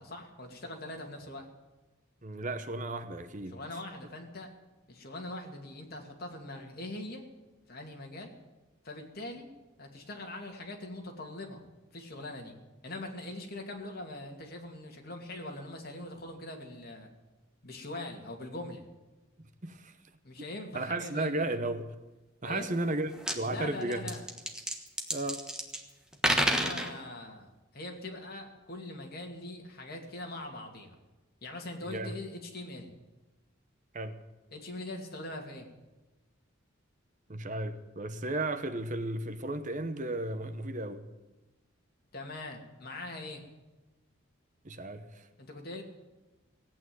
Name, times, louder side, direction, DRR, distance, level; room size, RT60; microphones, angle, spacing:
voice 1, 0.0-1.5 3.5-4.5 4.9-7.2 7.7-8.3 8.8-9.5 9.8-11.6 11.9-12.6 12.8-17.1 17.6-18.9 20.2-21.6 22.4-22.7 23.4-24.2 26.4-31.0 31.4-32.9 34.5-35.7 42.1-43.4 45.4-45.8, left 2 dB, 50° left, 2.6 m, -42 dB
voice 2, 2.2-3.6 19.6-19.9 20.7-21.9 22.4-24.1 25.1-25.4 31.8-32.1 33.9-34.2 37.3-41.1 44.6-45.3, right 2 dB, 40° right, 0.9 m, -34 dB
sound 1, 22.8-22.9 23.1-23.4 23.9-25.8 26.1-26.9, equal, 5° right, 1.4 m, -29 dB
17.0 x 9.0 x 9.4 m
head